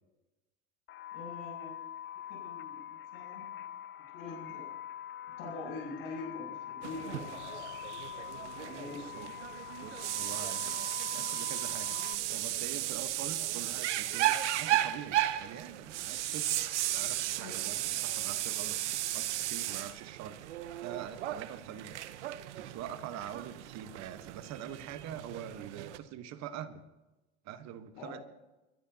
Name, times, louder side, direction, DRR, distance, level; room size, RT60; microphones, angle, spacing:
sound 1, 0.9-12.1, left 11 dB, 35° left, 0.5 m, -44 dB
voice 1, 1.1-1.8 2.3-3.4 4.1-4.7 5.4-7.7 8.5-9.1 17.4-17.6 27.9-28.2, left 3 dB, 65° left, 1 dB, 7.1 m, -44 dB
sound 2, 6.8-26.0, right 14 dB, 90° right, 0.9 m, -35 dB
voice 2, 8.9-9.3 9.8-10.8 11.1-12.0 12.3-20.4 20.8-22.0 22.5-26.8 27.4-28.2, right 9 dB, 50° right, 10 dB, 1.2 m, -44 dB
29.0 x 13.5 x 2.8 m, 1.1 s
supercardioid pair, 100°, 34 cm